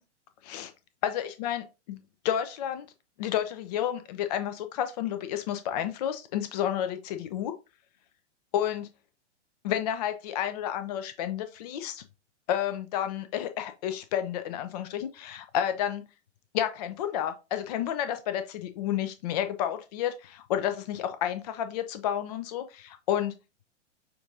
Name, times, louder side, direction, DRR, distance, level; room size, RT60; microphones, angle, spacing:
voice 1, 1.0-2.0 2.2-2.9 3.2-7.5 8.5-8.9 9.6-12.0 12.5-16.0 16.5-23.3, left 10 dB, 35° left, 9 dB, 0.4 m, -31 dB
6.7 x 2.5 x 2.6 m, 0.29 s
figure-of-eight pair, 110°, 36 cm